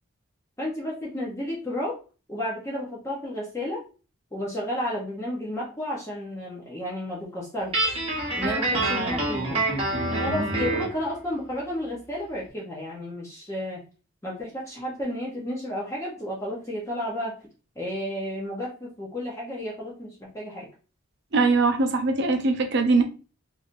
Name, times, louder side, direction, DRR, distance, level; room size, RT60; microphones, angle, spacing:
voice 1, 0.6-2.0 2.3-3.8 4.3-8.0 8.4-9.7 10.2-13.8 14.2-17.4 17.8-20.7, left 1 dB, 15° left, -4 dB, 0.7 m, -32 dB
Guitar, 7.7-11.0, right 2 dB, 25° right, 1.0 m, -26 dB
voice 2, 21.3-23.0, right 3 dB, 50° right, 5 dB, 0.6 m, -21 dB
3.2 x 2.6 x 2.5 m, 0.34 s
head